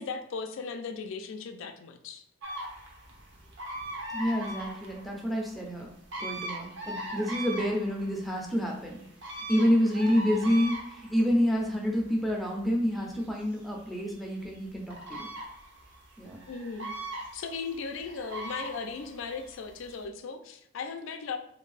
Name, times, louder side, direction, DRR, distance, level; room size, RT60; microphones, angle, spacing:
voice 1, 0.0-2.2 16.5-17.0 17.3-21.4, left 5 dB, 65° left, 7 dB, 0.4 m, -37 dB
sound 1, 2.4-20.0, right 1 dB, 60° right, 0.8 m, -41 dB
voice 2, 4.1-5.9 6.2-9.0 9.4-15.3 16.2-16.4, equal, ahead, -1 dB, 0.5 m, -28 dB
3.3 x 2.6 x 3.2 m, 0.72 s
head